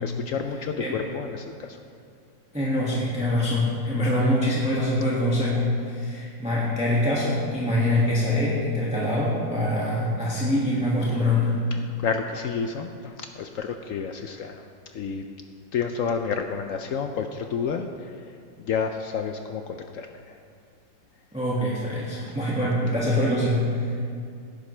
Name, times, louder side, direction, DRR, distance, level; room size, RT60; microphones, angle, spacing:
voice 1, 0.0-1.8 11.7-15.2 15.7-20.4 22.1-22.4, left 6 dB, 80° left, 6 dB, 0.7 m, -30 dB
voice 2, 2.5-11.5 21.3-24.0, left 1 dB, 5° right, -7 dB, 1.6 m, -24 dB
17.5 x 10.5 x 3.3 m, 2.3 s
omnidirectional pair, 2.0 m